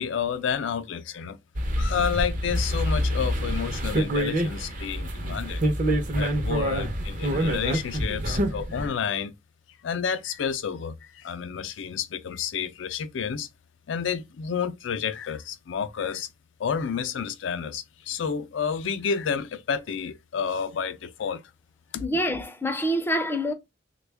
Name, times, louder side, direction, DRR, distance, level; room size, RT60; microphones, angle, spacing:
voice 1, 0.0-1.4 1.8-5.6 6.1-9.3 9.8-13.5 13.9-16.3 16.6-21.4 21.9-22.0, left 7 dB, 85° left, 0.4 m, -30 dB
sound 1, 1.5-8.9, equal, 45° right, 0.6 m, -26 dB
voice 2, 22.0-23.5, equal, 10° left, 0.4 m, -26 dB
3.4 x 2.2 x 3.3 m
head